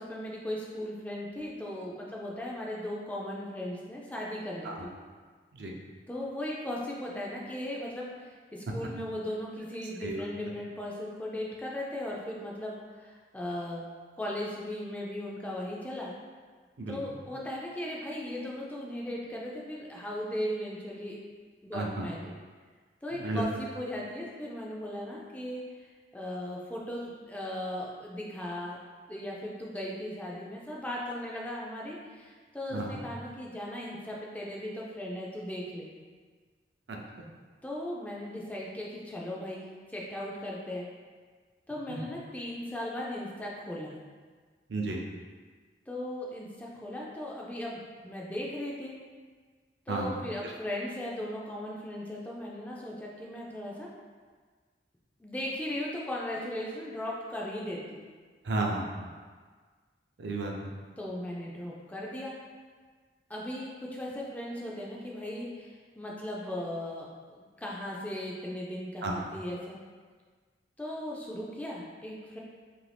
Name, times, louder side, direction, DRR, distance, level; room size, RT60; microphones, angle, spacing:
voice 1, 0.0-4.9 6.1-13.8 14.2-16.1 16.9-22.3 23.0-28.8 29.1-35.9 37.6-40.9 41.7-44.0 45.9-48.9 49.9-53.9 55.2-58.1 61.0-62.3 63.3-69.8 70.8-72.4, left 1 dB, 10° left, -4 dB, 0.3 m, -37 dB
voice 2, 21.7-22.0 23.2-23.4 32.7-32.9 36.9-37.0 41.9-42.0 44.7-45.0 49.9-50.1 58.5-58.8 60.2-60.5 69.0-69.2, right 2 dB, 75° right, 0 dB, 0.4 m, -32 dB
2.7 x 2.5 x 3.3 m, 1.5 s
head